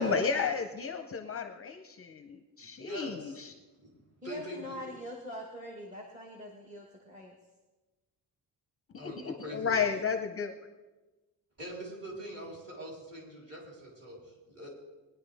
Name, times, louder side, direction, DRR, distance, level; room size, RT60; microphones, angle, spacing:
voice 1, 0.0-3.3 8.9-9.1 9.5-10.5, left 5 dB, 35° left, 5 dB, 0.6 m, -32 dB
voice 2, 2.6-3.4 3.8-3.9 4.2-4.9 8.9-10.0 11.6-14.7, right 1 dB, 35° right, -4 dB, 3.9 m, -44 dB
voice 3, 4.2-7.3, left 1 dB, 15° right, 0 dB, 1.2 m, -43 dB
20.5 x 10.0 x 3.4 m, 1.2 s
cardioid pair, 175°, 42 cm